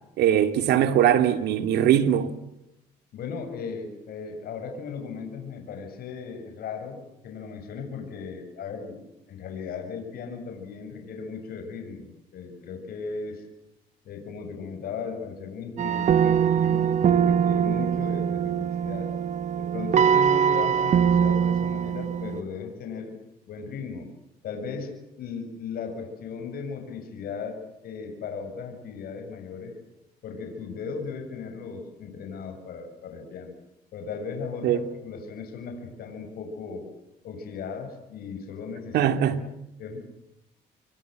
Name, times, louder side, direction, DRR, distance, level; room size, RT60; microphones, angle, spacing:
voice 1, 0.2-2.3 34.6-34.8 38.9-39.4, right 10 dB, 75° right, 2.4 m, -21 dB
voice 2, 3.1-9.0 9.3-12.1 12.3-13.4 14.1-19.1 19.6-23.2 23.5-24.1 24.4-29.8 30.2-33.5 33.9-36.9 37.2-39.5 39.8-40.0, left 5 dB, 65° left, 7.1 m, -37 dB
sound 1, 15.8-22.4, right 8 dB, 45° right, 1.1 m, -22 dB
27.5 x 24.0 x 7.7 m
cardioid pair, 110°, 17 cm